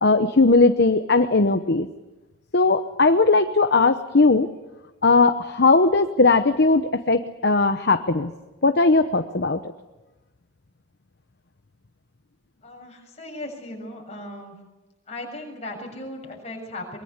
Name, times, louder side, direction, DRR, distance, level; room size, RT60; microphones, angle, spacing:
voice 1, 0.0-1.9 2.5-4.5 5.0-8.3 8.6-9.6, left 3 dB, 55° left, 8 dB, 0.9 m, -18 dB
voice 2, 12.6-14.6 15.1-17.0, left 1 dB, 35° left, 1 dB, 6.9 m, -37 dB
23.5 x 22.5 x 8.1 m, 1.1 s
head